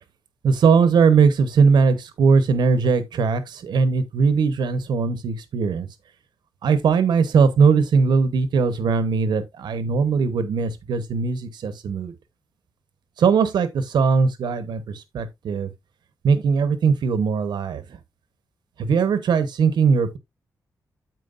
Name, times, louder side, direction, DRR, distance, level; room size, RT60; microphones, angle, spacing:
voice 1, 0.4-5.9 6.6-12.1 13.2-15.7 16.2-17.8 18.8-20.2, right 5 dB, 85° right, 1.0 m, -20 dB
13.5 x 4.6 x 2.5 m
wide cardioid pair, 155°, 7 cm